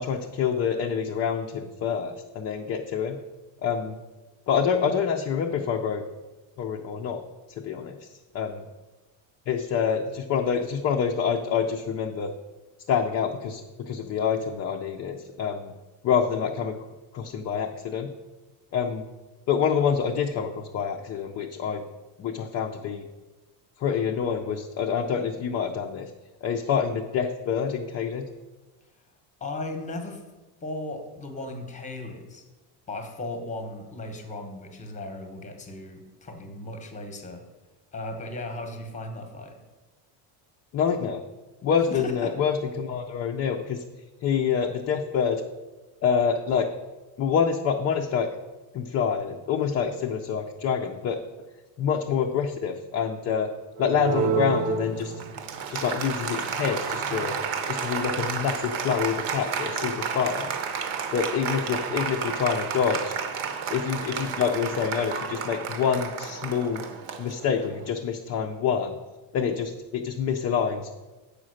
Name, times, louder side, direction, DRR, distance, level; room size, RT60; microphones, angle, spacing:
voice 1, 0.0-3.2 3.6-4.0 4.5-6.0 6.6-7.2 7.6-8.1 8.3-8.7 9.5-12.3 12.9-15.7 16.0-16.8 17.1-18.1 18.7-19.0 19.5-21.8 22.2-23.1 23.8-26.1 26.4-28.3 40.7-41.2 41.6-43.8 44.2-45.4 46.0-46.7 47.2-48.3 48.7-51.2 51.8-53.5 53.8-55.1 55.7-57.3 57.7-60.6 61.1-63.2 63.7-66.8 67.2-69.0 69.3-70.9, left 7 dB, 35° left, 3 dB, 0.4 m, -26 dB
voice 2, 29.4-30.2 30.6-32.4 32.9-37.4 37.9-39.6 41.9-42.3, left 2 dB, 15° left, 5 dB, 0.9 m, -36 dB
Applause, 53.8-67.9, right 6 dB, 75° right, 1.0 m, -31 dB
7.3 x 5.1 x 6.3 m, 1.2 s
cardioid pair, 160°, 50 cm